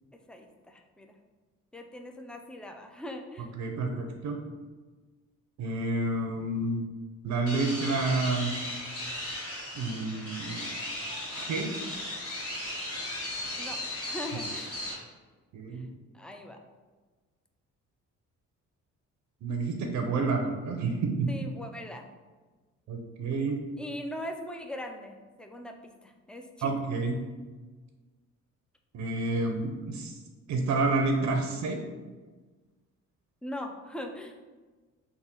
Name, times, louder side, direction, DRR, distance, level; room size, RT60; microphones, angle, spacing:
voice 1, 0.1-1.2 1.7-3.5 13.6-13.8 14.1-14.7 15.7-15.9 16.1-16.6 21.3-22.1 23.8-26.7 33.4-34.3, left 1 dB, 5° left, 4 dB, 0.3 m, -40 dB
voice 2, 3.6-4.4 5.6-6.8 7.2-8.5 9.7-10.7 11.3-11.7 15.5-15.9 19.4-21.5 22.9-23.6 26.6-27.2 28.9-30.1 30.5-31.8, right 3 dB, 70° right, 3 dB, 0.6 m, -29 dB
sound 1, 7.5-14.9, left 1 dB, 50° left, 1.4 m, -36 dB
3.5 x 2.2 x 4.3 m, 1.3 s
cardioid pair, 90°, 30 cm